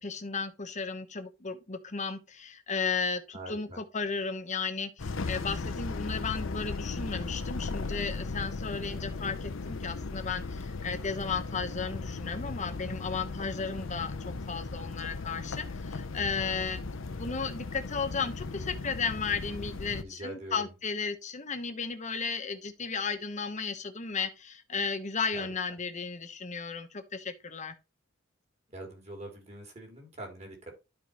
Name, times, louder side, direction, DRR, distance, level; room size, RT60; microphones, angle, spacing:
voice 1, 0.0-16.8 17.1-27.8, left 5 dB, 35° left, 1.1 m, -34 dB
voice 2, 3.3-3.8 20.0-20.6 25.3-25.5 28.7-30.7, right 1 dB, 35° right, 3.3 m, -43 dB
sound 1, 5.0-20.0, left 3 dB, 75° left, 0.7 m, -37 dB
12.0 x 4.8 x 3.0 m
head